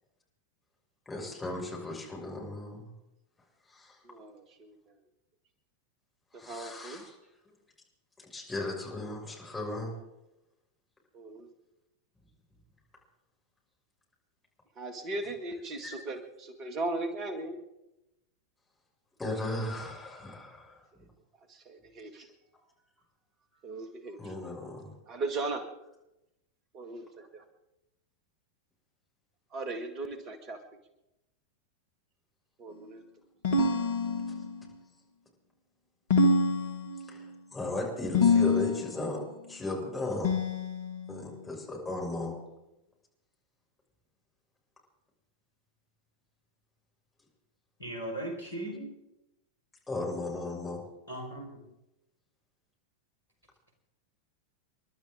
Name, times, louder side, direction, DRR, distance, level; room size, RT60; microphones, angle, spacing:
voice 1, 1.1-2.9 3.7-4.0 6.3-7.1 8.3-9.9 15.8-15.9 19.2-20.8 22.2-22.3 24.2-24.9 37.1-37.2 37.5-39.2 39.5-40.3 41.1-42.3 49.9-50.8, left 2 dB, 10° left, -2 dB, 6.1 m, -36 dB
voice 2, 4.0-4.9 6.3-7.0 11.1-11.5 14.8-17.6 21.5-22.3 23.6-24.3 25.1-25.6 26.7-27.4 29.5-30.6 32.6-33.1, right 2 dB, 35° right, 7 dB, 2.0 m, -38 dB
sound 1, 33.4-34.6 36.1-37.2 38.1-39.0 40.2-41.2, left 3 dB, 55° left, 1.9 m, -26 dB
voice 3, 47.8-48.9 51.1-51.6, right 1 dB, 80° left, 1 dB, 4.6 m, -37 dB
30.0 x 12.0 x 3.8 m, 0.89 s
figure-of-eight pair, 90°, 0 cm